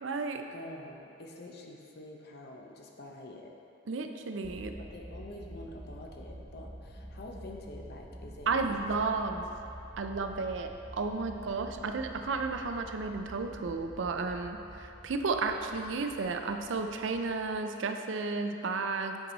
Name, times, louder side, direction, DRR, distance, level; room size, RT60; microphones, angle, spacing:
voice 1, 0.0-0.4 3.9-4.8 8.5-9.4 10.0-19.2, right 4 dB, 75° right, 6 dB, 0.5 m, -33 dB
voice 2, 0.5-3.5 4.8-8.9 9.4-9.5, left 1 dB, 55° left, 1 dB, 0.8 m, -47 dB
sound 1, 4.4-17.6, equal, 5° right, 0.4 m, -48 dB
9.0 x 4.7 x 4.0 m, 2.7 s
head